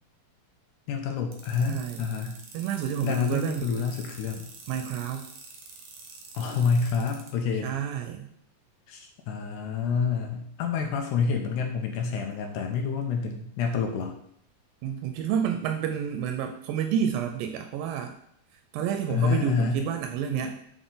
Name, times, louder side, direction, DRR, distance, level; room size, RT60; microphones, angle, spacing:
voice 1, 0.9-2.4 3.0-4.5 6.3-7.8 8.9-14.1 19.1-19.8, left 5 dB, 80° left, 3 dB, 2.0 m, -28 dB
sound 1, 1.3-7.3, right 5 dB, 70° right, 2.2 m, -46 dB
voice 2, 1.7-2.0 2.5-3.7 4.7-5.3 7.6-8.3 14.8-18.1 18.7-20.6, right 8 dB, 85° right, 5 dB, 2.3 m, -29 dB
6.2 x 4.0 x 3.9 m, 0.70 s
omnidirectional pair, 4.0 m